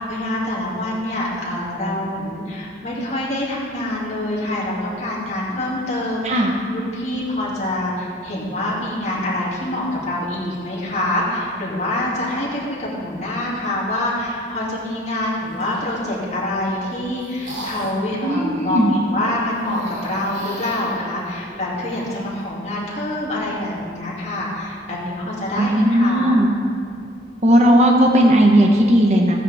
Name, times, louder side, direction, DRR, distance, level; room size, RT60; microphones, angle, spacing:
voice 1, 0.0-26.3, left 1 dB, 40° left, -7 dB, 2.6 m, -25 dB
sound 1, 15.4-16.0 16.7-18.1 19.5-22.5, right 1 dB, 85° right, 2.7 m, -38 dB
voice 2, 18.2-18.9 25.6-26.5 27.4-29.3, equal, 40° right, 1 dB, 1.1 m, -15 dB
15.0 x 9.7 x 3.6 m, 2.2 s
head